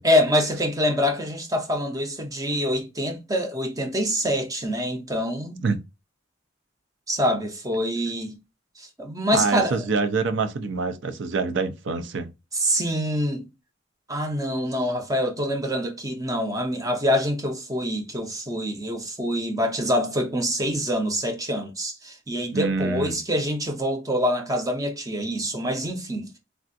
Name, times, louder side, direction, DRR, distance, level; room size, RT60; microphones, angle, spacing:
voice 1, 0.0-5.6 7.1-8.4 8.8-9.8 12.5-13.5 14.1-26.3, equal, 15° right, 0.6 m, -25 dB
voice 2, 9.3-12.3 22.5-23.2, right 4 dB, 60° right, 0.5 m, -25 dB
3.4 x 2.4 x 2.5 m
head